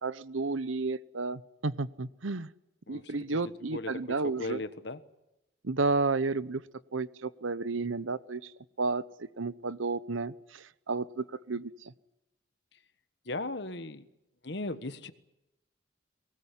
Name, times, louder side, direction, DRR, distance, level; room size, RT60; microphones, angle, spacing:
voice 1, 0.0-2.5 2.9-4.6 5.6-6.6 6.9-8.5 8.8-11.9, right 3 dB, 90° right, 17 dB, 0.9 m, -32 dB
voice 2, 2.9-5.0 13.3-14.1 14.4-15.1, left 2 dB, 60° left, 12 dB, 1.3 m, -38 dB
23.0 x 19.5 x 9.9 m, 0.93 s
head